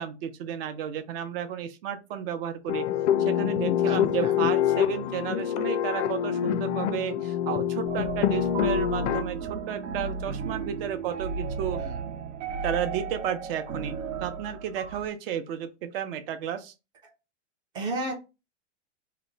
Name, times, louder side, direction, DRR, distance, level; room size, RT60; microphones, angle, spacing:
voice 1, 0.0-2.9 3.2-11.8 12.6-13.9 14.2-16.7, right 9 dB, 50° right, 9 dB, 0.6 m, -32 dB
sound 1, 2.7-9.2, left 10 dB, 70° left, 0.5 m, -26 dB
voice 2, 3.8-4.3 11.8-12.0 17.0-17.1 17.7-18.1, right 2 dB, 10° right, 2 dB, 0.4 m, -33 dB
sound 2, 7.8-15.1, right 5 dB, 75° right, 0.9 m, -34 dB
2.9 x 2.2 x 3.8 m, 0.27 s
hypercardioid pair, 145°, 37 cm